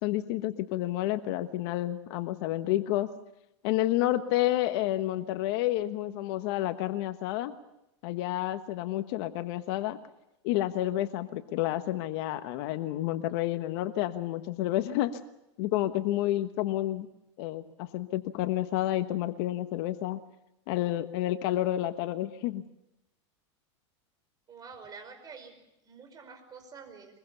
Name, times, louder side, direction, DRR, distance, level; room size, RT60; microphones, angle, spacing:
voice 1, 0.0-3.1 3.6-7.5 8.0-10.0 10.4-15.2 15.6-17.1 17.4-20.2 20.7-22.6, left 14 dB, 55° left, 10 dB, 1.3 m, -30 dB
voice 2, 24.5-27.2, right 5 dB, 25° right, 6 dB, 5.3 m, -48 dB
24.0 x 22.0 x 7.0 m, 0.88 s
supercardioid pair, 130°, 15 cm